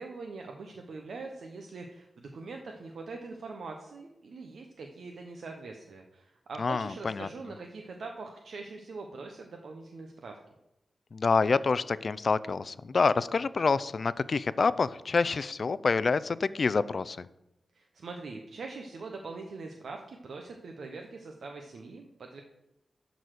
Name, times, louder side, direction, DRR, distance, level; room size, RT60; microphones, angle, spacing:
voice 1, 0.0-10.4 17.7-22.4, right 3 dB, 75° right, 3 dB, 0.8 m, -43 dB
voice 2, 6.6-7.3 11.1-17.3, left 4 dB, 50° left, 17 dB, 0.3 m, -27 dB
11.0 x 4.1 x 6.4 m, 0.89 s
wide cardioid pair, 110°, 0 cm